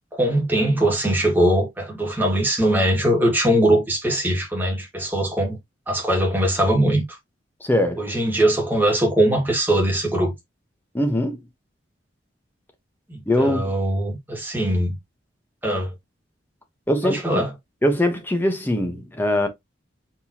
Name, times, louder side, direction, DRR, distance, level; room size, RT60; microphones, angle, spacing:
voice 1, 0.1-5.6 5.9-7.2 8.0-10.3 13.1-15.0 15.6-15.9 17.0-17.5, right 1 dB, 10° right, 1.9 m, -21 dB
voice 2, 7.6-8.0 10.9-11.4 13.3-13.7 16.9-17.4 17.8-19.5, left 1 dB, 10° left, 1.1 m, -22 dB
4.5 x 3.8 x 2.8 m
head